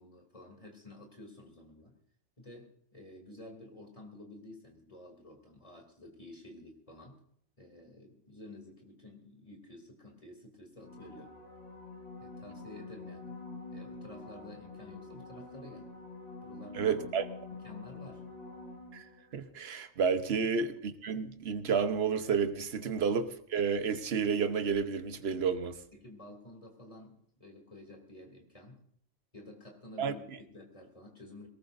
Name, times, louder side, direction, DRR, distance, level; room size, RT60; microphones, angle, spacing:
voice 1, 0.0-1.9 2.4-7.2 7.6-11.3 12.2-13.3 13.7-15.9 16.4-17.0 17.5-18.2 20.4-20.5 25.9-28.8 29.3-31.5, left 1 dB, 30° left, 2.9 m, -51 dB
sound 1, 10.8-19.4 24.7-24.8, left 3 dB, 80° left, 8.2 m, -47 dB
voice 2, 16.7-17.3 18.9-19.0 19.3-20.7 21.0-25.8 30.0-30.1, right 6 dB, 60° right, 1.1 m, -30 dB
21.5 x 18.5 x 2.6 m
omnidirectional pair, 1.2 m